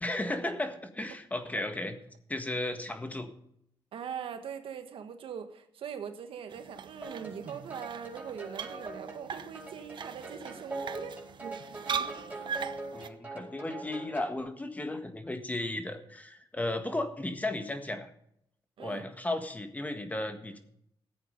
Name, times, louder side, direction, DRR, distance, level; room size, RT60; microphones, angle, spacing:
voice 1, 0.0-2.0 2.3-3.3 12.9-18.1 18.8-20.6, left 1 dB, 15° left, 7 dB, 1.6 m, -34 dB
voice 2, 3.9-11.2 11.9-12.6 18.8-19.1, right 7 dB, 80° right, 8 dB, 1.5 m, -42 dB
sound 1, 6.5-13.1, right 6 dB, 60° right, 0.8 m, -40 dB
sound 2, 7.0-14.4, right 2 dB, 15° right, 4.9 m, -43 dB
15.0 x 8.4 x 5.2 m, 0.73 s
cardioid pair, 100°, 9 cm